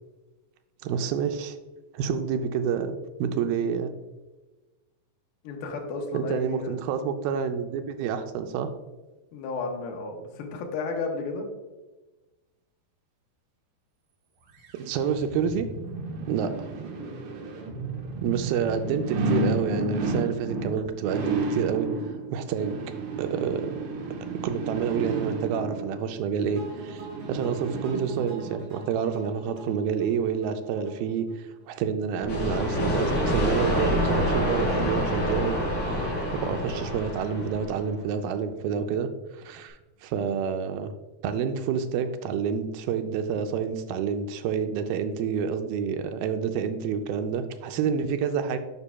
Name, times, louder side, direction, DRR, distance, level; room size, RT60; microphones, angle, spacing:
voice 1, 0.8-1.6 1.9-3.9 6.1-8.7 14.7-15.7 16.3-16.7 18.2-21.9 22.3-22.8 23.2-23.7 24.4-27.0 27.3-35.6 35.8-40.9 41.2-48.6, right 7 dB, 85° right, 7 dB, 2.4 m, -28 dB
voice 2, 5.4-6.8 9.3-11.5 16.9-17.2, left 3 dB, 85° left, 2 dB, 2.7 m, -33 dB
sound 1, 14.6-28.5 29.0-29.1, right 3 dB, 65° right, 2.2 m, -32 dB
sound 2, 26.6-31.7, right 2 dB, 50° right, 3.2 m, -44 dB
sound 3, 32.2-37.9, equal, 35° left, 2.7 m, -27 dB
9.6 x 5.6 x 2.3 m, 1.1 s
omnidirectional pair, 4.3 m